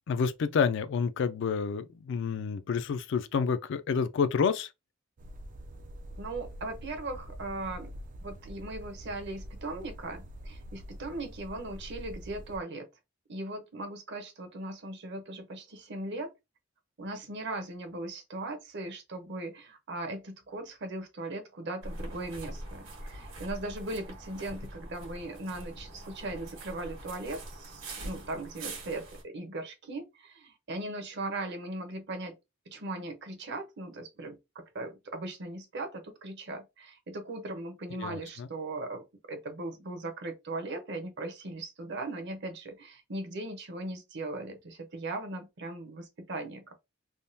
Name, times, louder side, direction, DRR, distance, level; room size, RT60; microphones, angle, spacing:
voice 1, 0.1-4.7 37.9-38.5, left 6 dB, 60° left, 0.3 m, -29 dB
sound 1, 5.2-12.6, equal, 40° right, 0.3 m, -45 dB
voice 2, 6.2-7.9 8.2-12.9 13.3-16.3 17.0-32.4 32.7-46.7, right 2 dB, 60° right, 0.8 m, -39 dB
sound 2, 21.8-29.2, right 1 dB, 80° right, 1.4 m, -43 dB
3.5 x 2.2 x 2.6 m
head